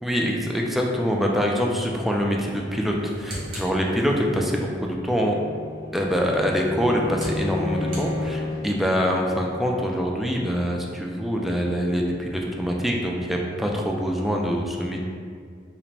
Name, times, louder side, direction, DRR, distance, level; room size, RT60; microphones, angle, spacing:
voice 1, 0.0-5.4 5.9-15.0, equal, ahead, 0 dB, 0.3 m, -24 dB
sound 1, 2.8-4.5 6.5-8.8, right 1 dB, 50° right, 1.1 m, -39 dB
Bowed string instrument, 4.9-8.8, left 3 dB, 35° left, 0.7 m, -32 dB
4.8 x 2.1 x 3.3 m, 2.1 s
head